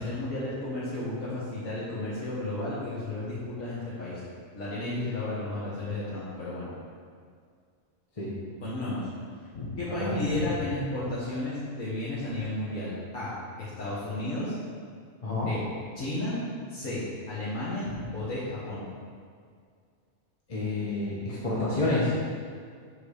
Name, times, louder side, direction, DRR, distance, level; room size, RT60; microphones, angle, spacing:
voice 1, 0.0-4.2 4.5-6.7 8.6-9.1 9.8-14.6 15.4-15.6 16.0-16.4 16.7-17.8 18.1-18.9, left 2 dB, 80° left, -10 dB, 2.1 m, -33 dB
voice 2, 9.5-10.2 10.4-10.5 15.2-15.5 17.9-18.0 20.5-22.1, left 2 dB, 25° left, -7 dB, 1.3 m, -29 dB
7.7 x 4.6 x 6.6 m, 2.1 s
omnidirectional pair, 1.4 m